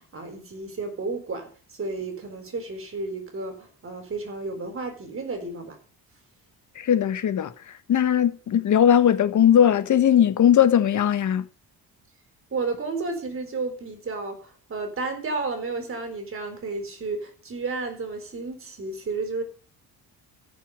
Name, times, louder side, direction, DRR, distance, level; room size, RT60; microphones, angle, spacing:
voice 1, 0.0-5.8 12.5-19.4, right 3 dB, 35° right, 4.3 m, -32 dB
voice 2, 6.7-7.5 7.9-11.5, left 9 dB, 50° left, 1.6 m, -19 dB
14.0 x 7.0 x 8.0 m
cardioid pair, 150°, 38 cm